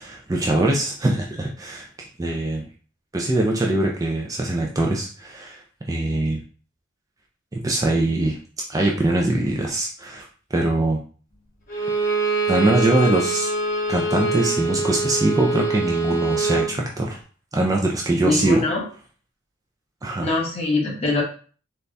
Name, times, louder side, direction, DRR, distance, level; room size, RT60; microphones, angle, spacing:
voice 1, 0.0-2.7 3.1-5.6 5.9-6.4 7.5-8.4 8.7-10.2 10.5-11.0 12.5-13.5 13.9-17.2 17.5-18.6 20.0-20.3, right 1 dB, 15° right, -1 dB, 0.4 m, -22 dB
Bowed string instrument, 11.7-16.7, right 3 dB, 45° left, 1.7 m, -24 dB
voice 2, 18.2-18.8 20.2-21.2, left 2 dB, 30° left, -3 dB, 1.1 m, -23 dB
3.9 x 2.2 x 3.3 m, 0.41 s
head